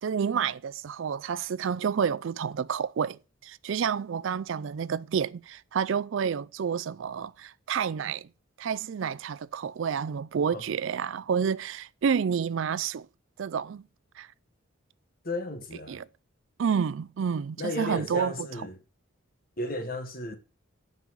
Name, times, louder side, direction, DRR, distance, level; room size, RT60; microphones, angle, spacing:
voice 1, 0.0-8.3 8.6-13.1 13.4-13.8 14.2-14.3 15.9-16.1 16.6-18.7, right 7 dB, 65° right, 0.4 m, -29 dB
voice 2, 15.2-16.0 17.6-18.8 19.6-20.4, left 1 dB, 45° left, 1.4 m, -34 dB
9.7 x 5.4 x 6.0 m
head